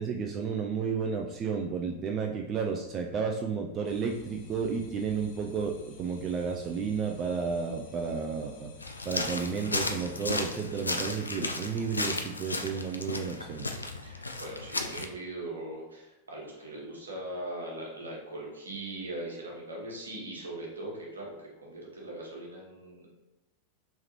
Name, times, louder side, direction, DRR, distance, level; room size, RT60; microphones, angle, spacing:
voice 1, 0.0-8.7 9.1-13.7, right 5 dB, 30° right, 2 dB, 0.3 m, -32 dB
sound 1, 3.8-10.3, left 3 dB, 60° left, 0.8 m, -52 dB
sound 2, 8.8-15.1, left 2 dB, 80° left, 0.3 m, -34 dB
voice 2, 14.0-23.1, right 1 dB, 75° right, -3 dB, 1.1 m, -40 dB
3.4 x 3.2 x 2.9 m, 1.0 s
figure-of-eight pair, 90°, 0 cm